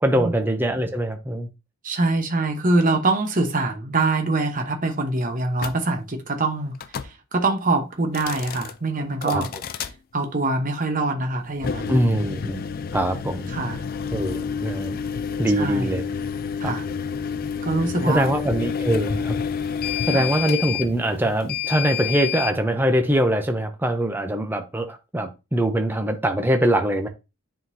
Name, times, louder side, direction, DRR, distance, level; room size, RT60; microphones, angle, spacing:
voice 1, 0.0-1.5 9.2-9.4 11.9-12.6 12.9-13.5 14.1-15.0 15.4-16.0 16.6-16.7 18.1-19.4 20.1-27.1, right 1 dB, 10° right, 0.5 m, -23 dB
voice 2, 1.8-6.7 7.0-9.5 10.1-11.9 13.5-13.8 15.6-15.9 16.6-16.8 17.6-18.3 20.1-20.2, right 2 dB, 35° right, 0.9 m, -24 dB
sound 1, 5.6-5.8 6.7-7.1 8.0-8.7 9.2-9.9 11.5-22.6, left 7 dB, 40° left, 0.3 m, -29 dB
9.7 x 3.8 x 2.7 m
head